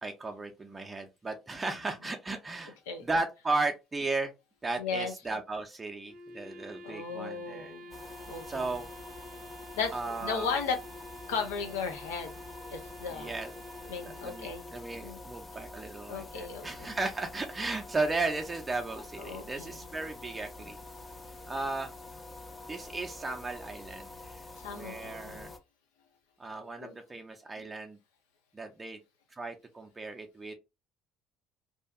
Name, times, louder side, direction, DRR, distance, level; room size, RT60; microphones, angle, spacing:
voice 1, 0.0-2.8 3.0-4.3 4.6-7.7 8.5-8.9 9.9-10.5 13.1-13.5 14.0-20.8 21.5-21.9 22.7-24.5 24.7-25.5 26.4-28.0 28.5-29.0 29.4-30.5, right 3 dB, 25° right, 0.5 m, -35 dB
voice 2, 4.8-5.1 6.8-7.9 8.3-8.6 9.8-10.8 11.3-12.3 12.7-13.3 13.9-14.7 15.0-15.2 16.1-16.7 19.2-19.8 24.6-25.5 26.8-27.0, left 5 dB, 90° left, 0.6 m, -35 dB
Wind instrument woodwind instrument, 6.1-15.3, left 1 dB, 80° right, 0.5 m, -49 dB
sound 1, 7.9-25.6, left 2 dB, 25° left, 0.6 m, -47 dB
2.7 x 2.4 x 2.3 m
hypercardioid pair, 65°, 0 cm